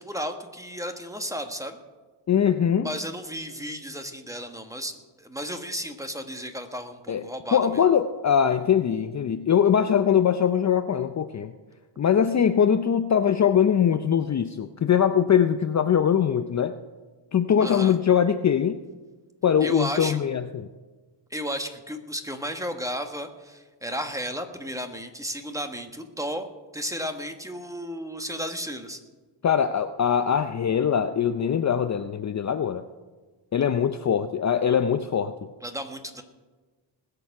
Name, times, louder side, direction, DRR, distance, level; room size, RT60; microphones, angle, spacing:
voice 1, 0.0-1.8 2.8-7.8 17.6-18.0 19.6-20.2 21.3-26.5 26.7-29.0 35.6-36.2, equal, 5° right, 6 dB, 1.4 m, -33 dB
voice 2, 2.3-2.9 7.1-7.2 7.5-11.5 12.0-16.7 17.3-18.8 19.4-20.7 29.4-32.8 33.5-35.3, left 8 dB, 40° left, 10 dB, 0.6 m, -22 dB
20.0 x 6.8 x 5.9 m, 1.3 s
cardioid pair, 80°, 46 cm